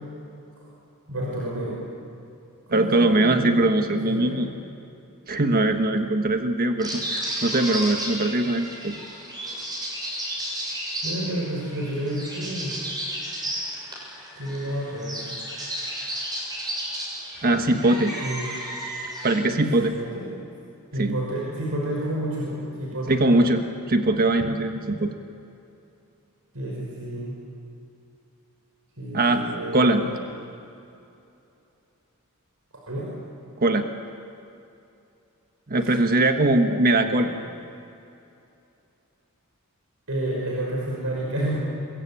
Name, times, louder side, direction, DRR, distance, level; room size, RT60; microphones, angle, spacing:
voice 1, 1.1-1.8 2.7-4.4 10.4-10.6 11.0-12.7 14.3-15.8 17.6-18.5 19.8-20.3 20.9-23.4 26.5-27.3 29.0-30.1 32.9-33.1 35.8-35.9 37.0-37.4 40.1-41.6, right 1 dB, 70° right, -3 dB, 6.0 m, -30 dB
voice 2, 2.7-4.5 5.3-9.0 17.4-18.1 19.2-20.0 21.0-21.2 23.1-23.6 23.9-25.1 29.1-29.4 29.7-30.0 33.6-33.9 35.7-37.3, right 2 dB, 45° right, 6 dB, 1.4 m, -21 dB
sound 1, 6.8-19.4, right 1 dB, 20° right, 6.9 m, -33 dB
28.5 x 22.5 x 8.8 m, 2.7 s
head